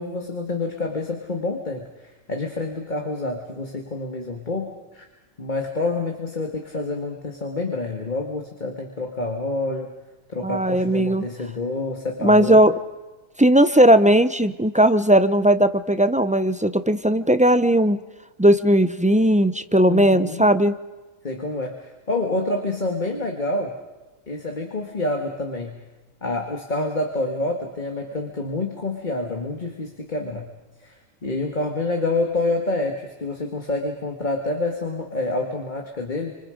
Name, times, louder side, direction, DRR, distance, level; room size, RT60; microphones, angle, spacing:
voice 1, 0.0-1.9 2.3-5.1 5.4-9.9 10.3-12.6 19.9-20.5 21.2-23.8 24.3-25.8 26.2-30.5 30.8-36.3, left 2 dB, 35° left, 3 dB, 1.9 m, -27 dB
voice 2, 10.4-11.2 12.2-12.7 13.4-18.0 18.4-20.7, right 1 dB, 10° right, 11 dB, 0.4 m, -17 dB
28.5 x 26.0 x 5.1 m, 1.1 s
omnidirectional pair, 1.4 m